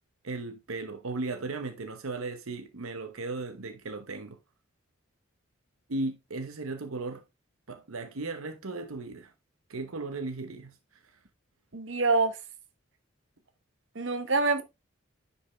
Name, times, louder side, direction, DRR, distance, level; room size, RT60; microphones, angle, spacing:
voice 1, 0.2-4.4 5.9-7.2 7.7-9.3 9.7-10.8, right 3 dB, 85° right, 0.9 m, -36 dB
voice 2, 11.7-12.3 13.9-14.6, right 3 dB, 60° right, 1.2 m, -25 dB
10.0 x 5.6 x 3.2 m
head